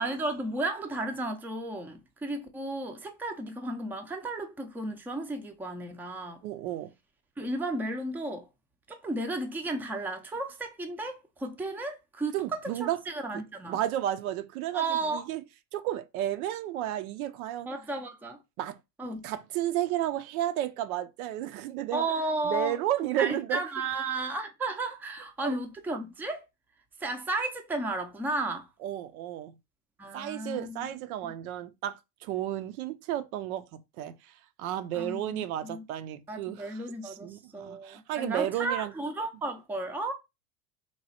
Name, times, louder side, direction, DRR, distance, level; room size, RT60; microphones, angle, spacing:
voice 1, 0.0-6.4 7.4-8.5 8.9-13.8 14.7-15.2 17.7-18.4 19.0-19.2 21.9-22.8 23.2-26.5 27.0-28.7 30.0-31.3 34.9-35.8 36.3-40.1, right 2 dB, 5° right, 0.5 m, -34 dB
voice 2, 6.4-6.9 12.3-13.0 13.3-13.4 13.7-15.4 15.7-17.7 18.6-18.8 19.2-22.0 22.4-23.6 25.4-25.5 28.8-29.6 30.1-34.2 34.6-38.9, right 12 dB, 70° right, 0.6 m, -32 dB
3.0 x 2.3 x 4.1 m
hypercardioid pair, 100°, 45 cm